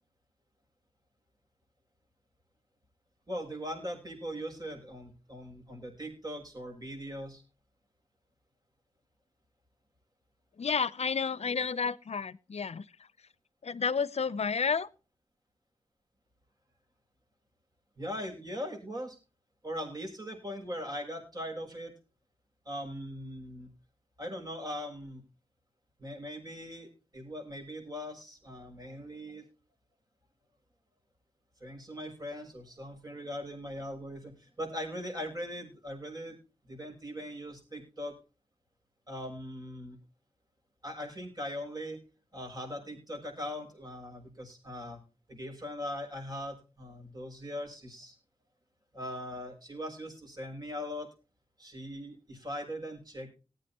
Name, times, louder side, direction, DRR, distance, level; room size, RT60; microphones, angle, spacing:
voice 1, 3.3-7.4 18.0-19.2 19.6-21.9 22.7-23.7 24.2-25.2 26.0-29.5 31.6-36.4 36.6-38.2 39.1-40.0 40.8-42.0 42.3-45.0 45.3-48.2 48.9-51.1 51.6-53.3, equal, 35° right, 7.1 m, -40 dB
voice 2, 10.6-12.9 13.6-14.9, left 5 dB, 60° left, 0.7 m, -31 dB
19.5 x 8.7 x 3.0 m
cardioid pair, 60°, 12 cm